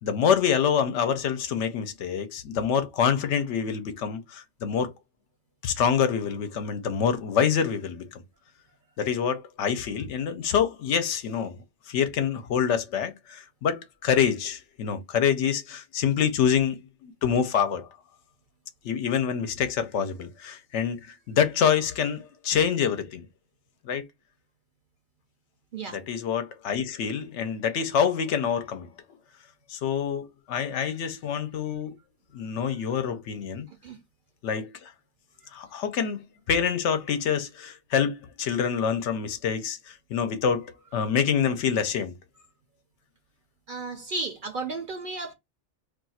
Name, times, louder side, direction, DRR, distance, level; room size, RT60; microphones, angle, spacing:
voice 1, 0.0-4.9 5.6-8.2 9.0-11.5 11.9-17.9 18.8-23.3 23.8-24.0 25.9-28.9 29.7-31.9 32.3-33.7 34.4-34.9 35.5-36.2 36.5-42.1, left 7 dB, 75° left, 0.9 m, -26 dB
voice 2, 43.7-45.3, right 3 dB, 55° right, 0.6 m, -33 dB
2.5 x 2.3 x 4.0 m
omnidirectional pair, 1.3 m